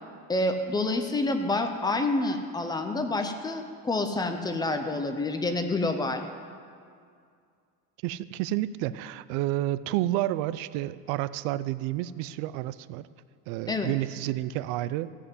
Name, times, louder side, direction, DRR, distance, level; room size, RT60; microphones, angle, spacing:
voice 1, 0.3-6.2 13.7-13.9, left 2 dB, 10° left, 6 dB, 0.5 m, -28 dB
voice 2, 8.0-13.1 13.5-15.1, right 15 dB, 90° right, 16 dB, 0.5 m, -30 dB
15.0 x 5.7 x 7.9 m, 2.2 s
cardioid pair, 175°, 35 cm